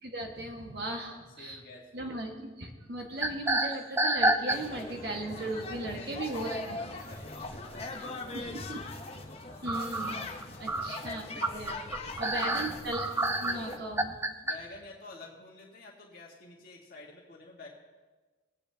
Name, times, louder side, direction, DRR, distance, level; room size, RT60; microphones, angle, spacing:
voice 1, 0.0-1.6 1.9-7.0 8.3-8.8 9.6-11.8 12.2-14.2, right 1 dB, 55° right, 1 dB, 1.5 m, -38 dB
voice 2, 1.0-2.1 5.7-6.6 6.9-8.7 10.5-10.8 12.0-12.9 14.4-17.7, left 3 dB, 50° left, -3 dB, 1.6 m, -50 dB
sound 1, 3.2-5.0 5.5-5.7 7.2-7.3 7.7-7.8 9.7-14.6, right 1 dB, 15° right, 0.4 m, -29 dB
sound 2, 4.5-13.8, left 3 dB, 30° left, 0.8 m, -41 dB
21.0 x 8.5 x 2.8 m, 1.3 s
head